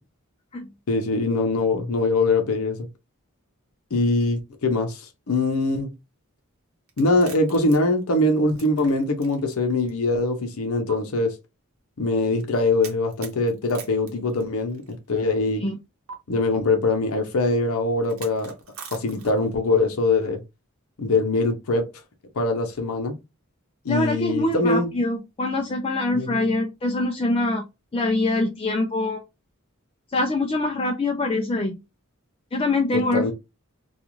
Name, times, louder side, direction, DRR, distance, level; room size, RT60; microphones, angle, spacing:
voice 1, 0.9-2.8 3.9-5.9 7.0-11.4 12.0-15.6 16.3-18.5 18.9-20.4 21.0-21.9 22.3-23.2 23.8-24.9 26.1-26.5 32.9-33.3, left 2 dB, 85° left, 0.6 m, -23 dB
sound 1, 6.9-9.6 9.9-10.0 10.9-11.0 12.8-14.9 16.1-16.2 18.0-19.5, right 6 dB, 75° right, 0.8 m, -42 dB
voice 2, 23.9-27.7 27.9-29.2 30.1-31.8 32.5-33.3, left 2 dB, 25° left, 0.3 m, -24 dB
2.4 x 2.3 x 2.9 m
head